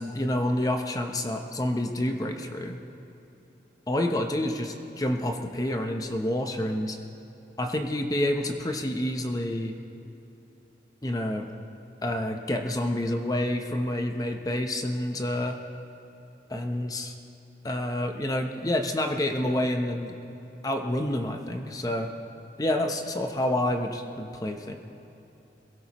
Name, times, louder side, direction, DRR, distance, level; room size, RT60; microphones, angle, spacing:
voice 1, 0.0-2.8 3.9-7.0 7.6-9.7 11.0-11.5 12.0-15.6 16.5-17.1 17.6-20.1 20.6-22.1 22.6-24.8, left 1 dB, 20° left, 4 dB, 0.7 m, -28 dB
22.5 x 16.5 x 3.0 m, 3.0 s
head